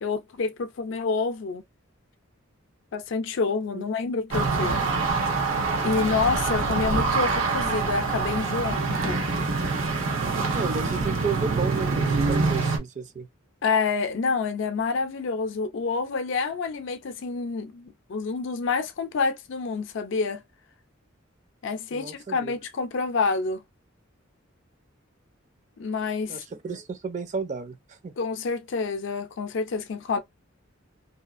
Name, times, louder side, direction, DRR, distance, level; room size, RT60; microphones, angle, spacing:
voice 1, 0.0-1.6 2.9-4.8 5.8-9.2 13.6-20.4 21.6-23.6 25.8-26.4 28.2-30.2, left 4 dB, 65° left, 0.4 m, -28 dB
sound 1, 4.3-12.8, right 4 dB, 85° right, 0.9 m, -25 dB
voice 2, 10.5-13.3 21.9-22.6 26.3-28.1, right 5 dB, 35° right, 0.4 m, -32 dB
2.7 x 2.4 x 2.4 m
head